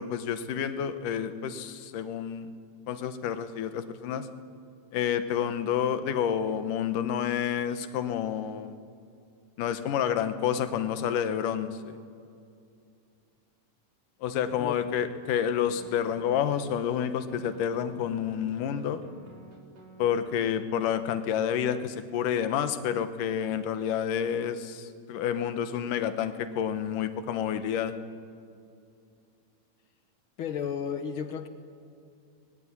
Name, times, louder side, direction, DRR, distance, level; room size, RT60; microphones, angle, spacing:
voice 1, 0.0-2.5 2.9-4.3 4.9-8.8 9.6-12.0 14.2-19.0 20.0-28.0, left 8 dB, 90° left, 10 dB, 2.7 m, -29 dB
sound 1, 14.5-17.0 17.3-20.9, right 1 dB, 55° right, 4.6 m, -51 dB
voice 2, 30.4-31.5, left 7 dB, 55° left, 9 dB, 1.5 m, -33 dB
24.5 x 20.5 x 9.8 m, 2.5 s
omnidirectional pair, 3.6 m